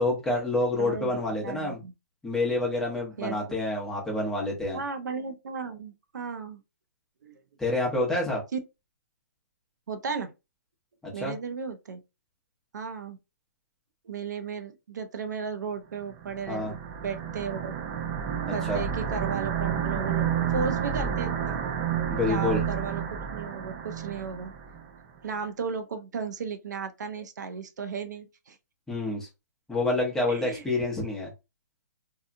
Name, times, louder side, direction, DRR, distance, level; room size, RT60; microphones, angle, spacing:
voice 1, 0.0-1.8 2.2-4.8 7.6-8.4 11.2-11.3 16.5-16.7 18.5-18.8 22.1-22.6 28.9-29.3 29.7-31.3, left 2 dB, 5° left, 0.8 m, -28 dB
voice 2, 0.7-1.1 1.4-1.9 3.2-3.3 4.7-6.6 7.2-7.3 8.5-8.6 9.9-10.3 11.1-12.0 12.7-13.2 14.1-17.7 18.5-21.6 22.3-24.5 25.2-28.6 30.3-30.6, right 5 dB, 75° right, 0.6 m, -35 dB
sound 1, 16.2-24.9, right 8 dB, 25° right, 0.4 m, -30 dB
2.8 x 2.3 x 2.5 m
hypercardioid pair, 155°, 10 cm